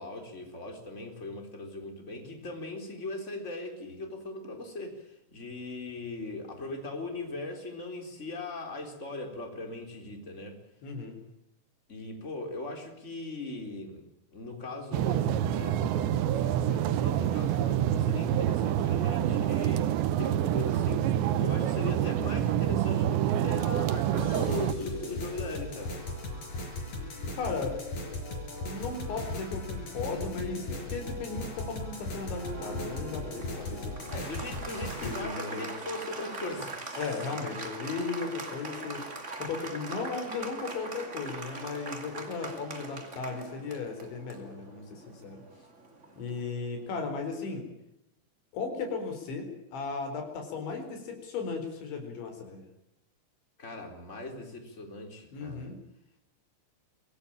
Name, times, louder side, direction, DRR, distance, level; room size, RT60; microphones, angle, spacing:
voice 1, 0.0-10.6 11.9-25.9 34.1-37.2 53.6-55.7, left 2 dB, 15° left, 4 dB, 3.7 m, -39 dB
voice 2, 10.8-11.2 27.3-27.8 28.6-34.0 35.0-35.7 37.0-45.4 46.2-47.7 48.5-52.6 55.3-55.8, left 4 dB, 80° left, 5 dB, 6.7 m, -36 dB
sound 1, 14.9-24.7, right 11 dB, 80° right, 3.3 m, -27 dB
sound 2, 24.2-35.2, left 2 dB, 45° left, 6.6 m, -37 dB
Applause, 32.2-46.6, right 3 dB, 20° right, 2.1 m, -42 dB
24.5 x 17.0 x 8.8 m, 0.86 s
omnidirectional pair, 5.2 m